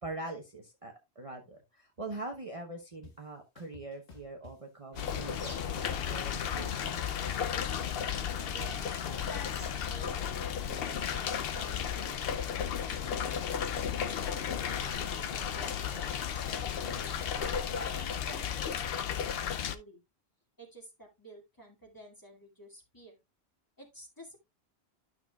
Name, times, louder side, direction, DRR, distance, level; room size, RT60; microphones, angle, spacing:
voice 1, 0.0-7.0, right 2 dB, 35° right, 2 dB, 1.0 m, -43 dB
sound 1, 3.0-3.1 3.6-4.5 5.0-6.1 6.4-8.8, left 4 dB, 80° left, 1.6 m, -52 dB
sound 2, 4.9-18.8, left 1 dB, 40° left, 2.3 m, -48 dB
sound 3, 5.0-19.8, left 8 dB, 65° left, 0.8 m, -34 dB
voice 2, 8.4-13.4 13.9-20.0 20.6-23.2 23.8-24.4, right 1 dB, 20° left, 0 dB, 2.1 m, -52 dB
12.0 x 6.0 x 2.3 m, 0.22 s
omnidirectional pair, 1.1 m